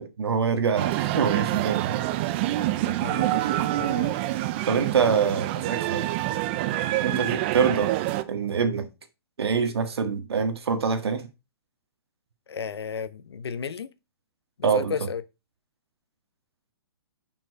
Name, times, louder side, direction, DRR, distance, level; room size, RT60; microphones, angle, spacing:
voice 1, 0.0-2.0 4.7-6.1 7.0-7.9 8.2-8.9 9.4-11.3 14.6-14.9, right 6 dB, 80° right, 1.7 m, -25 dB
sound 1, 0.8-8.2, right 15 dB, 25° right, 0.5 m, -26 dB
voice 2, 2.9-4.2 7.1-7.3 12.5-13.9 14.6-15.2, left 6 dB, 85° left, 1.0 m, -34 dB
6.5 x 5.9 x 4.6 m
hypercardioid pair, 160°, 13 cm